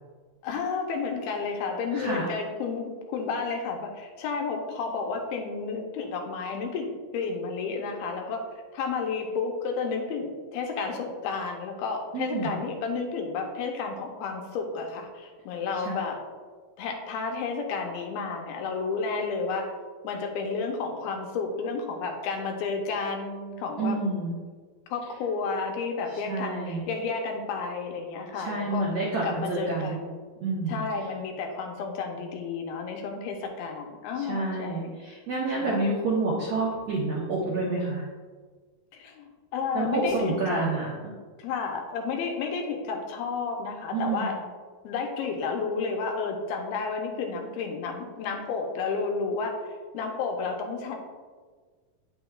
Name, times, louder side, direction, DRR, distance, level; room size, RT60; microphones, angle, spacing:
voice 1, 0.4-8.4 8.7-16.2 16.8-19.7 20.0-24.0 24.9-28.9 29.2-30.2 30.7-34.9 35.5-35.9 38.9-40.6 41.4-44.4 44.8-49.5 49.9-51.0, left 4 dB, 80° left, 2 dB, 2.6 m, -31 dB
voice 2, 1.9-2.3 12.1-12.5 15.8-15.9 23.8-24.3 26.3-26.8 28.3-30.0 30.4-30.8 34.2-38.0 39.7-41.1 43.9-44.3, right 3 dB, 80° right, -5 dB, 1.5 m, -28 dB
8.9 x 6.1 x 2.3 m, 1.5 s
omnidirectional pair, 4.4 m